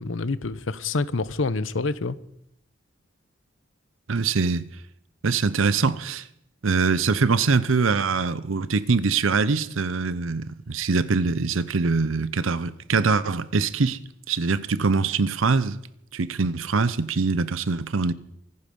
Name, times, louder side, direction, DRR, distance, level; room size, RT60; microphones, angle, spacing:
voice 1, 0.0-2.2, left 3 dB, 80° left, 0.8 m, -27 dB
voice 2, 4.1-4.7 5.2-6.3 6.6-14.0 14.3-15.8 16.1-18.1, right 4 dB, 90° right, 0.7 m, -23 dB
24.5 x 9.8 x 5.4 m
head